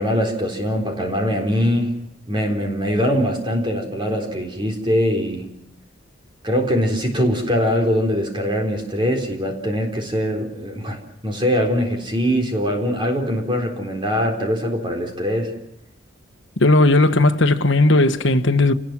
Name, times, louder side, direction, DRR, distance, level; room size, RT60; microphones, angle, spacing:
voice 1, 0.0-1.9 2.3-5.5 6.4-11.0 11.2-15.5, equal, 25° right, 3.9 m, -22 dB
voice 2, 16.6-18.7, left 2 dB, 70° left, 1.2 m, -16 dB
29.0 x 20.0 x 6.1 m
head